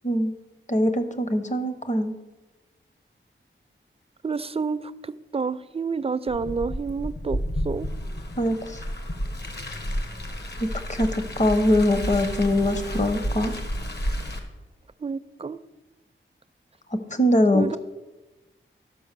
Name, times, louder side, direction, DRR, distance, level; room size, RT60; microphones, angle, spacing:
voice 1, 0.7-2.1 8.4-8.8 10.9-13.5 17.1-17.8, left 1 dB, 35° left, 9 dB, 0.9 m, -22 dB
voice 2, 4.2-7.9 15.0-15.6 17.5-17.8, right 5 dB, 30° right, 13 dB, 0.4 m, -29 dB
Car, 6.3-14.4, equal, 55° left, 1.4 m, -31 dB
12.5 x 5.4 x 6.7 m, 1.1 s
wide cardioid pair, 105°, 21 cm